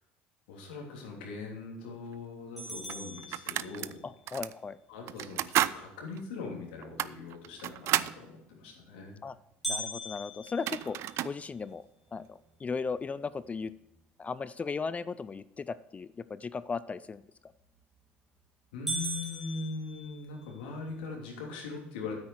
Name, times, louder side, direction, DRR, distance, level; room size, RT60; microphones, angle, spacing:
voice 1, 0.5-4.1 4.9-9.2 18.7-22.1, left 4 dB, 90° left, 0 dB, 3.1 m, -41 dB
sound 1, 2.1-2.2 2.9-3.9 4.3-4.5 5.1-5.8 6.2-6.3 6.8-8.2 10.2-10.3 10.5-11.4, right 13 dB, 60° right, 0.4 m, -31 dB
sound 2, 2.6-4.1 9.6-11.8 12.3-12.4 12.9-13.0 13.7-14.0 17.6-18.0 18.4-18.5 18.9-20.6, right 1 dB, ahead, 2.9 m, -39 dB
voice 2, 4.0-4.8 9.2-9.4 9.7-11.0 11.2-11.9 12.1-13.7 14.2-17.2, left 5 dB, 25° left, 16 dB, 0.4 m, -36 dB
9.5 x 8.6 x 4.7 m, 0.86 s
supercardioid pair, 85°, 5 cm